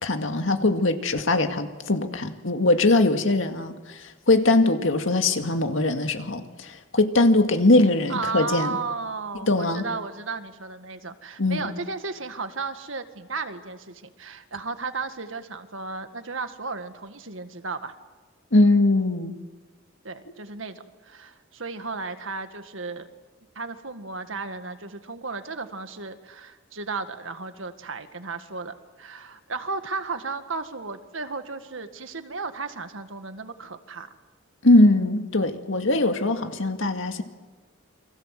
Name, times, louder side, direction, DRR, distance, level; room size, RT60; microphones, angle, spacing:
voice 1, 0.0-8.8 9.4-9.8 11.4-11.7 18.5-19.4 34.6-37.2, left 2 dB, 65° left, 6 dB, 2.1 m, -21 dB
voice 2, 8.1-18.0 20.0-23.1 23.6-34.1, right 4 dB, 70° right, 8 dB, 1.8 m, -34 dB
29.0 x 23.5 x 7.7 m, 1.3 s
head